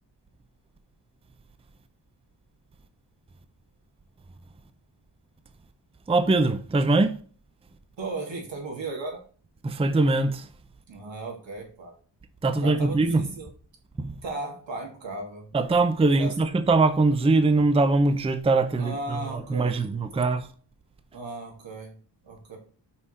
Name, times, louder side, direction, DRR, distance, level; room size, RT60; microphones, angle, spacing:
voice 1, 6.1-7.2 9.6-10.5 12.4-13.2 14.0-14.1 15.5-20.5, right 3 dB, 15° right, 0.5 m, -22 dB
voice 2, 8.0-9.3 10.9-11.9 12.4-13.5 14.2-15.5 16.2-16.4 18.8-19.8 20.1-20.3 21.1-22.0 22.2-22.6, right 2 dB, 85° right, 2.4 m, -36 dB
5.6 x 4.9 x 4.2 m
wide cardioid pair, 140°, 44 cm